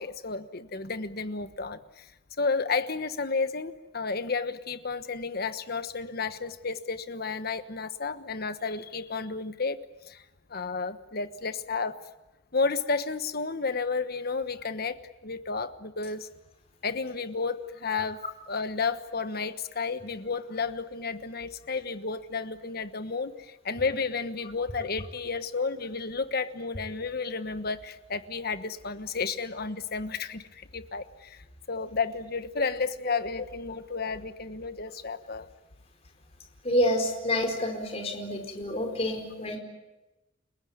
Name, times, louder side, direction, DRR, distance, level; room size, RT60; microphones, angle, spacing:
voice 1, 0.0-2.0 2.4-9.8 10.1-10.2 10.5-12.0 12.5-16.3 16.8-18.2 18.5-31.4 31.7-35.5, left 4 dB, 50° left, 11 dB, 1.2 m, -32 dB
voice 2, 36.6-39.6, left 1 dB, 30° left, 3 dB, 4.7 m, -28 dB
30.0 x 17.0 x 9.5 m, 1.0 s
head